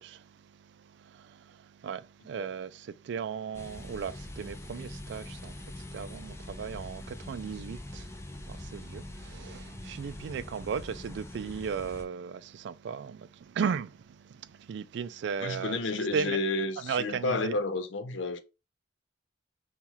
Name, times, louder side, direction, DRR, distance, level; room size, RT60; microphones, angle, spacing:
voice 1, 0.0-15.8 16.1-16.4 16.8-17.6, right 6 dB, 65° right, 0.3 m, -36 dB
sound 1, 3.5-12.0, left 1 dB, 15° left, 0.5 m, -43 dB
voice 2, 15.4-18.4, left 3 dB, 85° left, 0.6 m, -31 dB
5.5 x 2.4 x 3.0 m
head